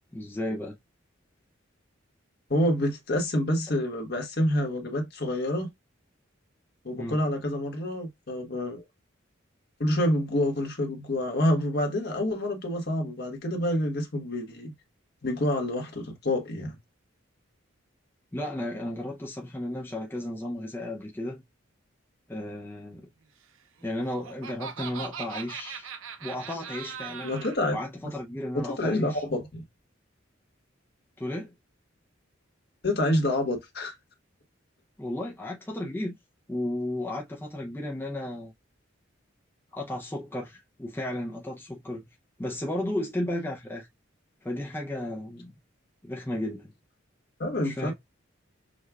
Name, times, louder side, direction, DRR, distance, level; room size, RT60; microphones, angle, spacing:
voice 1, 0.1-0.7 7.0-7.2 18.3-21.4 22.3-23.1 23.8-25.9 26.2-27.4 27.7-29.2 31.2-31.5 35.0-36.2 36.5-38.5 39.7-42.1 42.4-43.9 44.4-45.5 46.0-46.7 47.6-47.9, left 1 dB, 10° left, 0.4 m, -34 dB
voice 2, 2.5-5.7 6.8-8.8 9.8-14.7 15.2-16.8 27.2-27.8 28.5-29.6 32.8-33.9 47.4-47.9, left 1 dB, 50° left, 1.2 m, -27 dB
Laughter, 23.8-27.6, right 7 dB, 80° right, 0.5 m, -40 dB
6.3 x 2.3 x 2.3 m
head